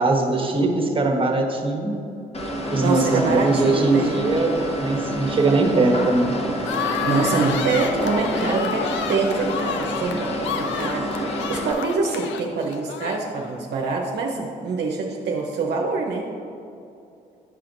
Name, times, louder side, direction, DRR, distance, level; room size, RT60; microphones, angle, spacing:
voice 1, 0.0-2.0 2.7-6.3, right 3 dB, 25° right, 2 dB, 1.2 m, -21 dB
sound 1, 2.3-11.7, equal, 30° left, 1.2 m, -28 dB
voice 2, 2.8-4.1 7.0-16.2, right 4 dB, 60° right, -1 dB, 0.7 m, -25 dB
sound 2, 6.6-13.6, left 7 dB, 70° left, 0.5 m, -30 dB
9.7 x 5.6 x 2.6 m, 2.6 s
hypercardioid pair, 50°, 20 cm